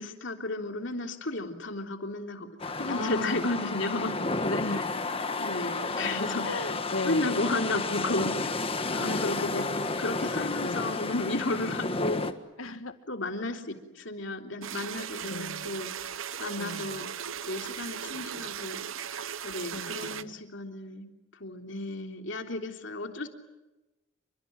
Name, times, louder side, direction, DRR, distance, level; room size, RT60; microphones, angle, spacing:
voice 1, 0.0-2.5 2.7-4.2 5.4-6.5 7.0-12.2 13.1-16.0 16.4-17.1 17.5-23.3, left 2 dB, 65° left, 4 dB, 3.4 m, -33 dB
sound 1, 2.6-12.3, left 3 dB, 25° left, 1.5 m, -31 dB
voice 2, 2.9-3.4 4.4-4.9 5.8-5.9 6.4-7.4 9.0-10.0 10.6-11.0 11.9-12.3 12.6-12.9 15.2-15.8 16.6-17.1 18.4-18.5 19.7-20.3 21.7-22.3, left 2 dB, 80° left, 9 dB, 2.0 m, -37 dB
sound 2, 14.6-20.2, right 8 dB, 75° right, 0.9 m, -37 dB
28.5 x 25.0 x 7.8 m, 1.1 s
head